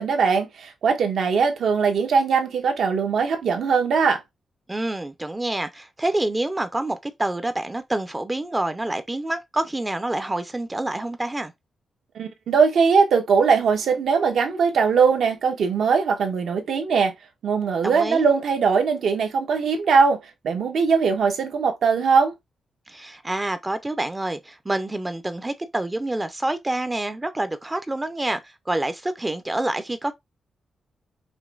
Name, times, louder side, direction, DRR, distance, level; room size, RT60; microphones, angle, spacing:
voice 1, 0.0-4.2 12.1-17.1 17.4-22.3, right 5 dB, 75° right, 1.0 m, -20 dB
voice 2, 4.7-11.5 17.8-18.2 22.9-30.1, right 1 dB, 15° right, 0.5 m, -27 dB
5.0 x 3.0 x 2.4 m
wide cardioid pair, 125°, 0 cm